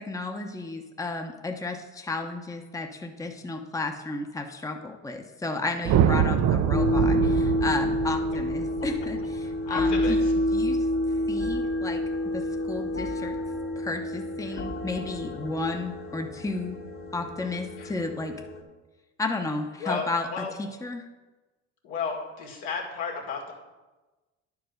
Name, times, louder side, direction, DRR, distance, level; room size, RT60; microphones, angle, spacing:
voice 1, 0.0-10.2 10.5-10.8 11.3-12.0 12.3-13.3 13.8-16.8 17.1-18.3 19.2-21.0, left 3 dB, 10° left, 4 dB, 0.9 m, -33 dB
sound 1, 5.8-10.2, right 9 dB, 55° right, 0.6 m, -25 dB
sound 2, 6.0-18.6, left 1 dB, 40° left, 1.4 m, -29 dB
voice 2, 9.7-10.3 17.8-17.9 19.8-20.5 21.8-23.5, left 5 dB, 75° left, -1 dB, 2.3 m, -33 dB
10.0 x 4.8 x 6.5 m, 1.2 s
supercardioid pair, 75°, 33 cm